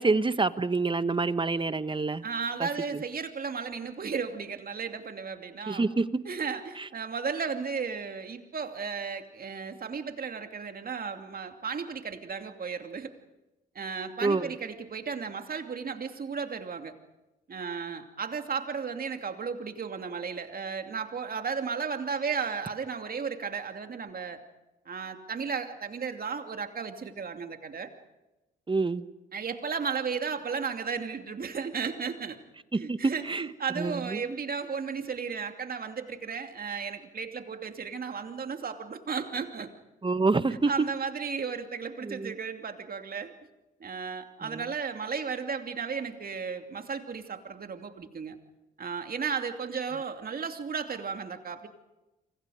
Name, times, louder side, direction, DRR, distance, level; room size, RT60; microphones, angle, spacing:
voice 1, 0.0-2.2 2.6-3.0 5.7-6.0 6.8-6.9 14.2-14.5 28.7-29.0 32.7-33.4 33.8-34.2 40.0-40.9 42.0-42.3 44.4-44.6, right 3 dB, 25° right, 13 dB, 1.4 m, -27 dB
voice 2, 2.2-5.9 6.2-13.1 13.7-16.9 17.5-24.4 24.9-27.9 29.3-32.4 32.8-39.7 40.6-43.3 43.8-48.4 48.8-51.7, right 5 dB, 50° right, 6 dB, 2.7 m, -34 dB
29.0 x 25.0 x 5.1 m, 1.0 s
hypercardioid pair, 45°, 20 cm